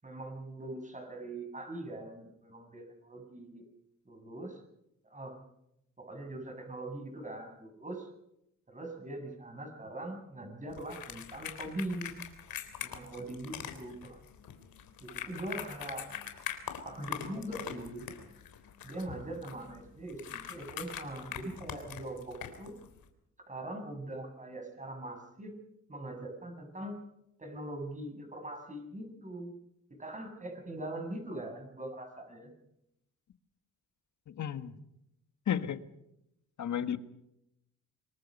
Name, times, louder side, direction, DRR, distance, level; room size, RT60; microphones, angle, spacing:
voice 1, 0.0-3.6 4.0-4.6 5.0-5.4 6.0-8.1 8.7-12.2 12.8-14.2 15.0-16.1 16.8-18.1 18.8-22.7 23.5-25.5 25.9-26.9 27.4-29.5 29.9-32.5, right 1 dB, 20° right, 4 dB, 7.9 m, -42 dB
sound 1, 10.7-23.1, left 9 dB, 80° left, 3.5 m, -43 dB
voice 2, 34.3-34.7 35.5-35.8 36.6-37.0, left 9 dB, 55° left, 11 dB, 1.6 m, -32 dB
26.5 x 22.0 x 5.5 m, 0.81 s
cardioid pair, 90°, 34 cm